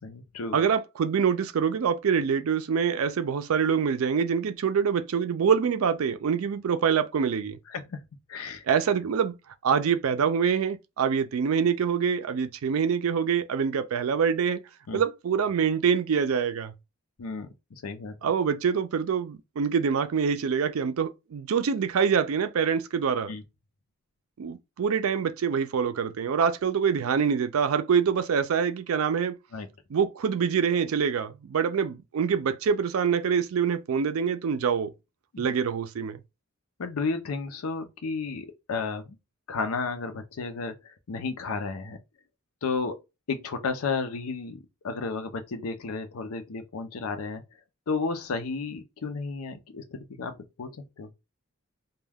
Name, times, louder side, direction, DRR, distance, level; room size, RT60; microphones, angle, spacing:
voice 1, 0.0-0.6 7.7-8.0 8.3-8.6 14.9-15.0 17.2-17.5 17.8-18.2 23.3-23.4 29.5-29.7 35.3-35.5 36.8-39.2 39.5-42.0 42.6-43.0 43.3-44.6 44.8-47.4 47.9-51.1, left 4 dB, 90° left, 0.5 m, -32 dB
voice 2, 0.5-7.6 8.7-9.4 9.6-14.6 14.9-16.7 18.2-23.3 24.4-29.4 29.9-34.9 35.4-36.2, right 6 dB, 75° right, 0.4 m, -25 dB
2.2 x 2.2 x 3.3 m
head